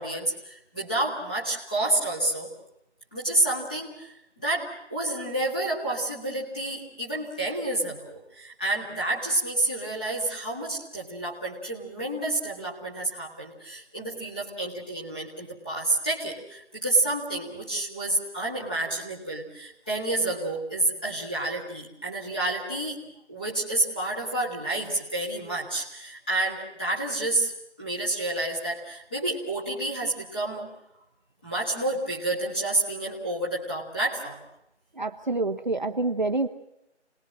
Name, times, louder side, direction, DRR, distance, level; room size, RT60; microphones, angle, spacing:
voice 1, 0.0-2.5 3.1-23.0 23.3-27.5 27.8-30.7 31.4-34.4, right 2 dB, 5° left, -7 dB, 1.9 m, -29 dB
voice 2, 34.9-36.5, right 2 dB, 40° right, 4 dB, 1.2 m, -27 dB
28.5 x 20.0 x 7.5 m, 0.84 s
figure-of-eight pair, 180°, 35 cm